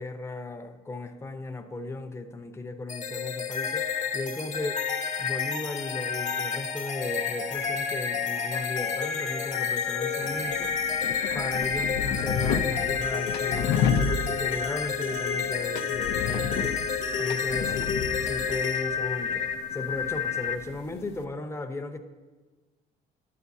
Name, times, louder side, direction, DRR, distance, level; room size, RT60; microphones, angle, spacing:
voice 1, 0.0-4.8 5.2-10.7 11.3-16.8 17.2-22.0, left 2 dB, 15° left, 0.7 m, -36 dB
sound 1, 2.9-20.6, left 6 dB, 45° left, 1.0 m, -30 dB
sound 2, 10.2-21.2, left 7 dB, 80° left, 0.5 m, -32 dB
12.0 x 8.3 x 2.7 m
cardioid pair, 110°, 17 cm